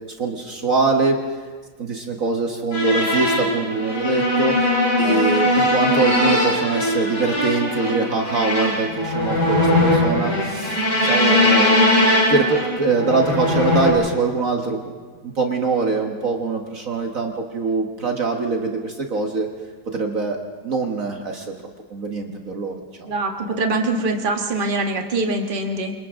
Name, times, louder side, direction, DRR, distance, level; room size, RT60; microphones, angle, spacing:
voice 1, 0.2-1.2 1.8-4.7 5.0-11.8 12.3-14.9 15.2-19.5 19.9-20.4 20.6-21.5 21.9-23.1, right 4 dB, 55° right, 2 dB, 1.7 m, -23 dB
sound 1, 2.7-13.9, left 1 dB, 85° left, 5.3 m, -20 dB
voice 2, 23.0-25.9, right 2 dB, 30° right, 3 dB, 1.7 m, -23 dB
28.5 x 26.0 x 3.7 m, 1.4 s
omnidirectional pair, 1.8 m